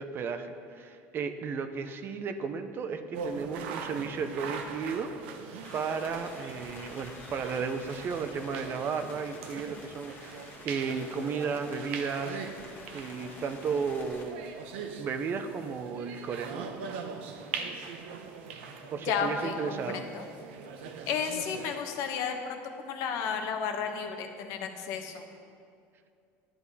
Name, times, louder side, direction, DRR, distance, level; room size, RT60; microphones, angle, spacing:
voice 1, 0.0-5.1 5.4-12.4 12.9-14.5 15.0-16.7 18.9-20.1, right 5 dB, 40° right, 8 dB, 0.7 m, -34 dB
sound 1, 3.1-21.8, right 5 dB, 90° right, 0.9 m, -41 dB
sound 2, 5.6-14.2, left 3 dB, 35° left, 1.6 m, -49 dB
voice 2, 19.1-19.6 19.9-20.2 21.1-25.2, left 6 dB, 65° left, 5 dB, 1.1 m, -32 dB
10.5 x 9.0 x 4.2 m, 2.4 s
supercardioid pair, 120°, 6 cm